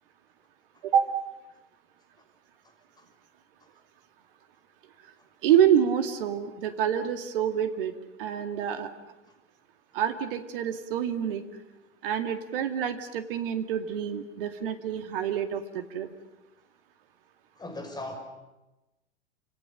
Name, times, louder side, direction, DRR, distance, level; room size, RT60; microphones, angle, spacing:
voice 1, 5.4-7.9 8.2-8.9 9.9-11.4 12.0-16.1, right 9 dB, 50° right, 2.2 m, -27 dB
voice 2, 17.6-18.2, left 2 dB, 10° left, 5.7 m, -38 dB
29.0 x 27.0 x 6.7 m
figure-of-eight pair, 95°, 35 cm